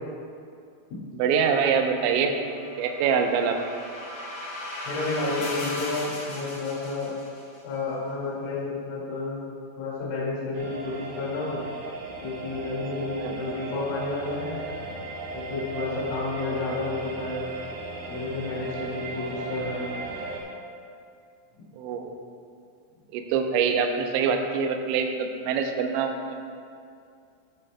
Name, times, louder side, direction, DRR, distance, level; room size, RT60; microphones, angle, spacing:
voice 1, 1.2-2.4 2.8-3.6 13.2-13.3 21.8-22.1 23.1-26.3, right 6 dB, 80° right, 4 dB, 2.8 m, -24 dB
sound 1, 2.3-7.6, left 1 dB, 60° left, 4.1 m, -37 dB
voice 2, 4.8-7.1 7.6-9.4 9.8-11.6 12.2-14.7 15.3-17.4 18.1-19.9 21.6-21.7, left 3 dB, 85° left, -7 dB, 4.9 m, -31 dB
sound 2, 10.5-20.4, right 3 dB, 60° right, 2.6 m, -36 dB
13.5 x 11.0 x 2.2 m, 2.4 s
omnidirectional pair, 5.8 m